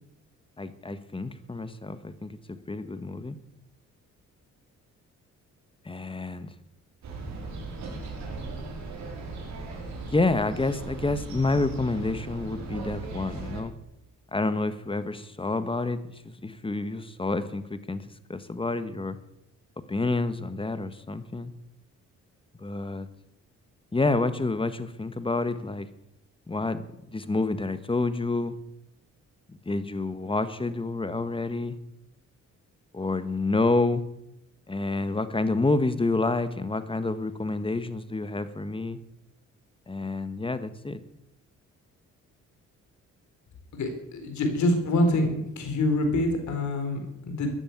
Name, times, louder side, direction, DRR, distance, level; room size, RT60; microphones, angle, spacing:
voice 1, 0.6-3.4 5.8-6.5 10.1-13.7 14.3-19.2 19.9-21.5 22.6-23.1 23.9-25.9 26.5-28.5 29.6-31.8 32.9-34.1 34.7-39.0 39.9-41.0, left 3 dB, 15° left, 12 dB, 1.4 m, -28 dB
sound 1, 7.0-13.6, right 3 dB, 65° right, 5.3 m, -38 dB
voice 2, 43.7-45.3 45.6-47.5, left 1 dB, 70° left, 6 dB, 4.2 m, -25 dB
14.5 x 10.0 x 9.4 m, 0.84 s
cardioid pair, 90°, 30 cm